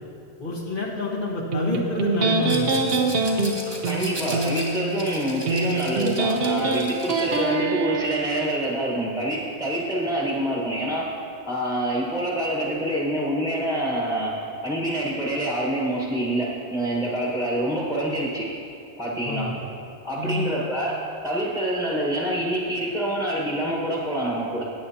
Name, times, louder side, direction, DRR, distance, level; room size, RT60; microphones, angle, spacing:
voice 1, 0.4-3.0 19.2-19.6 20.1-20.5, left 2 dB, 50° left, -3 dB, 1.6 m, -28 dB
Electric guitar, 1.5-8.5, right 3 dB, 60° right, 1.0 m, -25 dB
Rattle, 2.4-7.5, right 1 dB, 25° right, 1.4 m, -37 dB
voice 2, 3.6-11.0 11.5-14.3 14.6-18.5 19.0-19.5 20.0-21.0 21.2-24.6, right 1 dB, 5° left, -4 dB, 1.3 m, -26 dB
16.0 x 8.4 x 2.8 m, 2.7 s
omnidirectional pair, 1.1 m